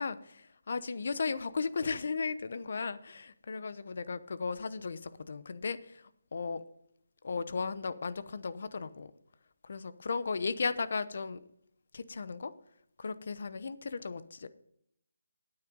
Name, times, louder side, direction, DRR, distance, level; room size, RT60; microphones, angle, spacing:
voice 1, 0.0-6.6 7.2-9.1 9.6-11.4 11.9-12.5 13.0-14.5, left 4 dB, 55° left, 14 dB, 0.8 m, -36 dB
9.4 x 9.0 x 5.2 m, 0.72 s
figure-of-eight pair, 165°, 0 cm